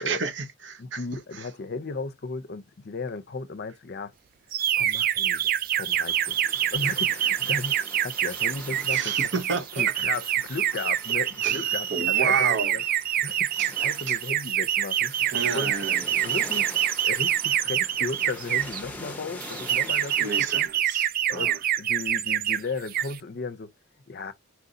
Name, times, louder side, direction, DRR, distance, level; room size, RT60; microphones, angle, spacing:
voice 1, 0.0-1.0 8.9-9.8 11.4-11.6 11.9-12.7 13.6-13.7 15.3-16.0 20.2-20.6 20.9-21.6, right 4 dB, 65° right, 0.8 m, -30 dB
voice 2, 0.8-4.1 4.8-6.4 6.7-9.3 9.7-12.8 13.2-15.1 15.5-15.8 16.2-16.8 17.0-20.7 21.3-23.7 24.1-24.3, left 3 dB, 55° left, 0.6 m, -35 dB
sound 1, 4.5-18.8 19.4-22.6 22.9-23.2, right 11 dB, 50° right, 0.3 m, -26 dB
sound 2, 5.9-20.7, left 2 dB, 10° left, 0.9 m, -44 dB
4.5 x 2.7 x 3.8 m
head